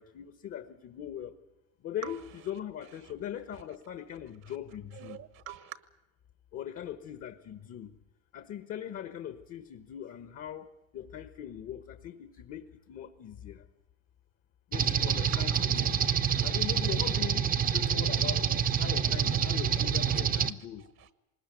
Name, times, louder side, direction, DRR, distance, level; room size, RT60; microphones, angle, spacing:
voice 1, 0.0-1.3 1.8-5.2 6.5-7.9 8.3-13.7 14.7-16.0 16.4-18.5 18.8-20.9, left 10 dB, 50° left, 10 dB, 1.3 m, -41 dB
voice 2, 4.9-5.8 15.3-16.9 18.1-18.6 19.0-20.5 21.0-21.1, right 11 dB, 60° right, 12 dB, 1.4 m, -48 dB
sound 1, 14.7-20.5, right 8 dB, 30° right, 0.8 m, -27 dB
20.5 x 20.0 x 9.2 m, 0.94 s
cardioid pair, 120°, 30 cm